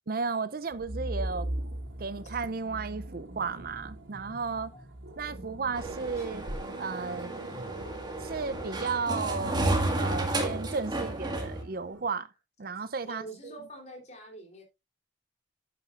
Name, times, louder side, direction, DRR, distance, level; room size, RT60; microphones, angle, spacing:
voice 1, 0.1-1.5 2.0-4.7 5.2-6.5 6.8-7.3 8.2-9.7 9.9-12.3 12.6-13.6, right 4 dB, 50° right, 0.6 m, -34 dB
sound 1, 0.7-12.0, right 1 dB, 85° right, 2.2 m, -41 dB
sound 2, 5.8-11.6, right 2 dB, 25° right, 1.8 m, -32 dB
voice 2, 13.0-14.6, right 1 dB, 40° left, 3.3 m, -45 dB
11.5 x 8.5 x 2.5 m
head